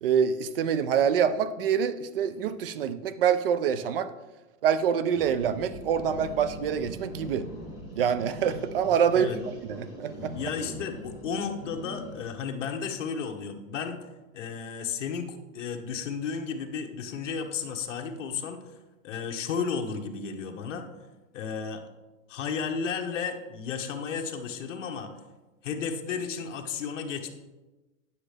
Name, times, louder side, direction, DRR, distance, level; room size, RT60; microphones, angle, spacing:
voice 1, 0.0-4.1 4.6-7.5 7.9-9.3 9.6-10.5, right 8 dB, 45° right, 13 dB, 0.5 m, -26 dB
sound 1, 5.2-12.3, equal, 10° right, 0.9 m, -42 dB
voice 2, 10.3-14.0 14.3-18.6 19.0-20.9 21.3-21.8 22.3-25.1 25.6-27.3, left 6 dB, 60° left, 4 dB, 1.1 m, -33 dB
9.8 x 6.4 x 3.4 m, 1.1 s
hypercardioid pair, 165°, 40 cm